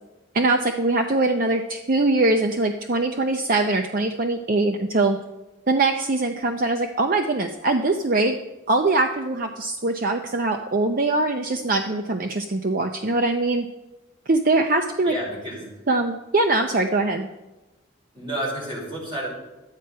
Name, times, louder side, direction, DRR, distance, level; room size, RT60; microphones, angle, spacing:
voice 1, 0.3-5.2 5.7-8.4 8.7-13.7 14.3-15.1 15.9-17.3, right 2 dB, 45° right, 5 dB, 0.6 m, -22 dB
voice 2, 15.0-15.6 18.1-19.3, right 1 dB, 25° right, -4 dB, 4.7 m, -30 dB
12.0 x 9.1 x 5.5 m, 1.1 s
head